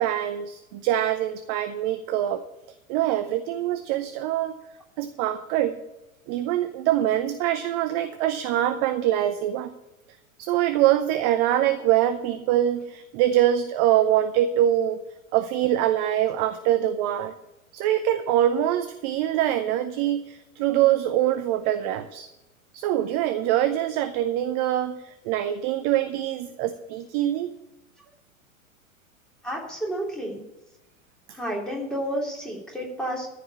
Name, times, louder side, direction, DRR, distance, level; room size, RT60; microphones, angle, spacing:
voice 1, 0.0-2.4 2.9-4.6 5.0-5.8 6.3-9.7 10.4-15.0 15.3-17.3 17.7-22.3 22.7-27.5, right 12 dB, 30° right, 10 dB, 0.6 m, -24 dB
voice 2, 29.4-30.4 31.3-33.3, right 1 dB, ahead, -3 dB, 3.3 m, -30 dB
14.0 x 5.0 x 8.6 m, 0.99 s
figure-of-eight pair, 95°, 42 cm